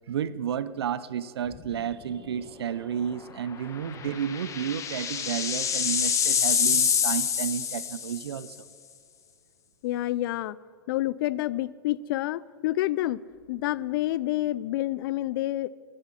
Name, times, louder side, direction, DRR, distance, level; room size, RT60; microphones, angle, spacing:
voice 1, 0.1-8.6, right 8 dB, 85° right, 16 dB, 0.6 m, -32 dB
sound 1, 1.5-1.9 2.2-2.3 3.7-8.4, left 7 dB, 25° left, 1.1 m, -26 dB
voice 2, 9.8-10.6 10.9-13.2 13.5-15.7, left 15 dB, 60° left, 21 dB, 0.4 m, -28 dB
12.0 x 10.0 x 7.4 m, 2.3 s
hypercardioid pair, 120°, 13 cm